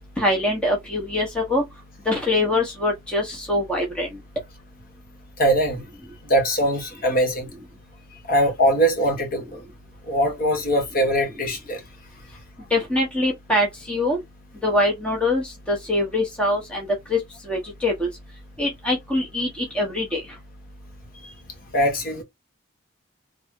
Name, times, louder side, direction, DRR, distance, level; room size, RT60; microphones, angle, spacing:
voice 1, 0.2-1.6 2.0-4.2 12.7-14.2 14.6-18.1 18.6-20.4, left 1 dB, 5° left, 1.1 m, -23 dB
voice 2, 5.4-5.8 6.2-7.5 8.3-9.6 10.1-11.8 21.2-21.3 21.7-22.2, equal, 45° left, 1.7 m, -21 dB
3.4 x 2.3 x 4.4 m
head